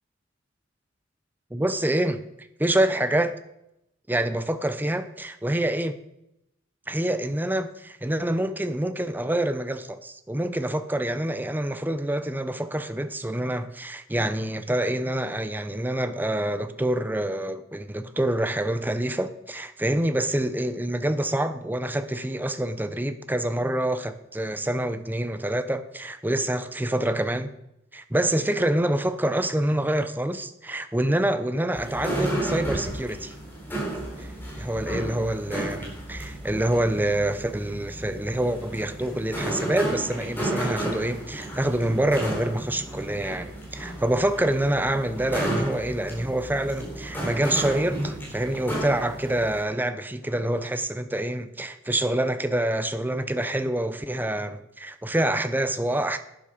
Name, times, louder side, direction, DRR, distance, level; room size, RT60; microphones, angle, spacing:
voice 1, 1.5-2.2 2.6-3.3 4.1-6.0 6.9-27.5 27.9-33.3 34.2-34.3 34.6-56.2, right 1 dB, 10° right, 0.8 m, -26 dB
sound 1, 31.7-49.6, right 1 dB, 10° left, 4.0 m, -33 dB
12.0 x 9.8 x 5.1 m
head